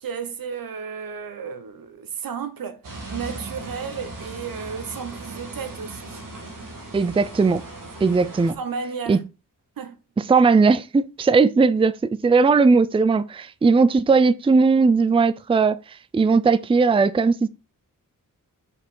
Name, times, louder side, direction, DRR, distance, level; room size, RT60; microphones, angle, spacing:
voice 1, 0.0-2.8 3.1-6.2 8.6-9.2 9.8-10.0, right 6 dB, 85° right, 1.1 m, -33 dB
sound 1, 2.8-8.5, right 2 dB, 70° right, 2.3 m, -38 dB
voice 2, 6.9-7.6 8.0-8.6 9.1-9.2 10.3-15.8 16.1-17.5, right 4 dB, 15° right, 0.4 m, -18 dB
6.5 x 5.0 x 5.4 m
wide cardioid pair, 160°, 33 cm